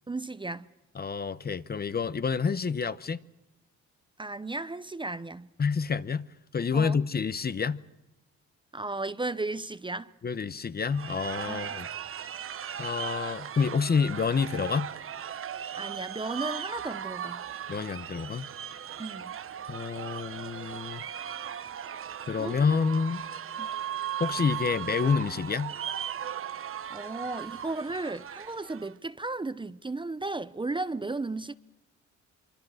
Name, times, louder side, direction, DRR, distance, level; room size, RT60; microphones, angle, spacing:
voice 1, 0.1-0.7 4.2-5.5 6.7-7.0 8.7-10.1 11.5-11.7 15.7-17.4 19.0-19.3 22.4-22.8 23.6-23.7 26.9-31.6, right 2 dB, 15° right, 0.8 m, -35 dB
voice 2, 0.9-3.2 5.6-7.8 10.2-11.9 12.8-14.9 17.7-18.5 19.7-21.0 22.2-23.2 24.2-25.7, left 5 dB, 30° left, 0.9 m, -28 dB
sound 1, 10.9-28.9, right 9 dB, 45° right, 0.9 m, -37 dB
25.0 x 24.0 x 6.5 m
cardioid pair, 90°, 30 cm